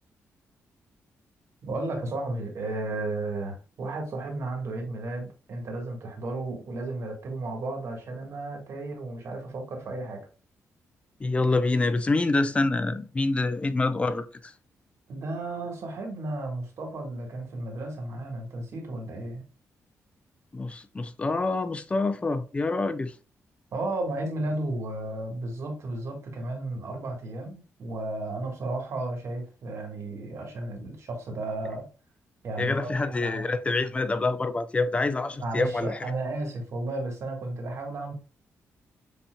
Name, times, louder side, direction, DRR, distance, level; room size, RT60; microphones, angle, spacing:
voice 1, 1.6-10.2 15.1-19.5 23.7-31.9 32.4-33.6 35.3-38.1, right 2 dB, 60° right, 1.6 m, -33 dB
voice 2, 11.2-14.5 20.5-23.1 32.6-36.0, left 3 dB, 20° left, 0.4 m, -26 dB
7.1 x 2.8 x 2.2 m
cardioid pair, 120°, 5 cm